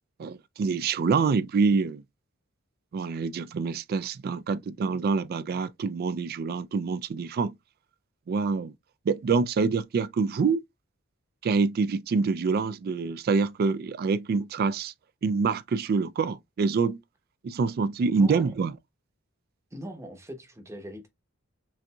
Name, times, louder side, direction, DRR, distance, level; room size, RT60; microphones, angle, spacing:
voice 1, 0.2-2.0 2.9-7.5 8.3-8.7 9.1-10.6 11.4-14.9 15.2-17.0 17.4-18.7, right 4 dB, 45° right, 0.3 m, -26 dB
voice 2, 18.1-18.5 19.7-21.1, equal, 15° right, 0.8 m, -41 dB
5.5 x 2.6 x 2.2 m
head